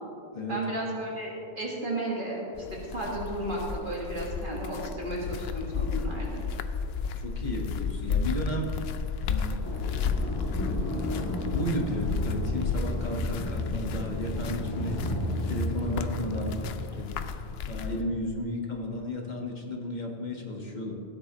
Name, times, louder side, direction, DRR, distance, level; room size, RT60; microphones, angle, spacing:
voice 1, 0.5-2.4 2.7-6.4, right 1 dB, 55° right, -3 dB, 1.8 m, -33 dB
sound 1, 2.5-18.0, left 5 dB, 75° left, 0.8 m, -33 dB
voice 2, 7.1-8.7 9.3-9.6 11.5-15.1 15.4-17.2 17.7-21.0, left 1 dB, 45° left, 1 dB, 1.5 m, -33 dB
sound 2, 9.6-16.7, left 1 dB, 15° left, 2.2 m, -33 dB
16.5 x 9.8 x 3.0 m, 2.7 s
omnidirectional pair, 1.1 m